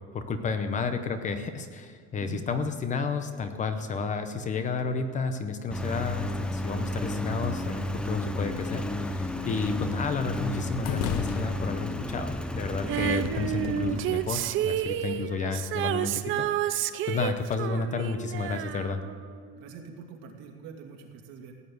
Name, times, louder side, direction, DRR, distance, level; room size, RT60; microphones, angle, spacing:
voice 1, 0.1-19.0, left 4 dB, 25° left, 8 dB, 0.8 m, -31 dB
voice 2, 2.1-2.5 9.3-9.6 19.5-21.5, right 6 dB, 80° right, 1 dB, 2.6 m, -45 dB
Engine, 5.7-15.1, left 1 dB, 5° left, 0.4 m, -33 dB
sound 1, 9.0-13.7, left 10 dB, 85° left, 1.0 m, -40 dB
Female singing, 12.9-19.5 19.8-19.9, right 12 dB, 45° right, 0.6 m, -30 dB
16.5 x 9.2 x 7.9 m, 2.1 s
cardioid pair, 175°, 30 cm